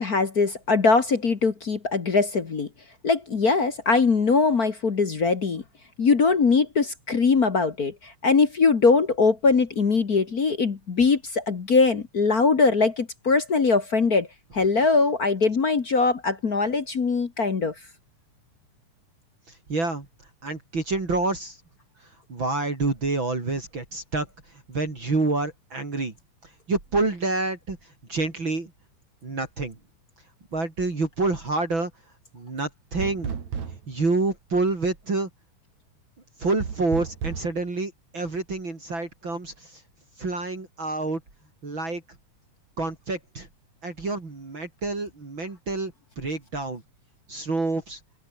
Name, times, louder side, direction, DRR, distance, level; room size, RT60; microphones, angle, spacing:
voice 1, 0.0-2.7 3.0-5.6 6.0-14.3 14.5-17.7, left 4 dB, 40° left, 1.5 m, -21 dB
voice 2, 19.5-20.1 20.4-21.6 22.3-24.3 24.7-26.1 26.7-27.8 28.1-28.7 29.2-29.8 30.5-31.9 32.3-33.4 33.9-35.3 36.4-39.8 40.2-41.2 41.6-42.0 42.8-43.5 43.8-46.8 47.3-48.0, right 3 dB, 35° right, 4.8 m, -28 dB
sound 1, 33.0-34.0 36.6-37.5, right 7 dB, 65° right, 4.1 m, -32 dB
open air
omnidirectional pair, 3.6 m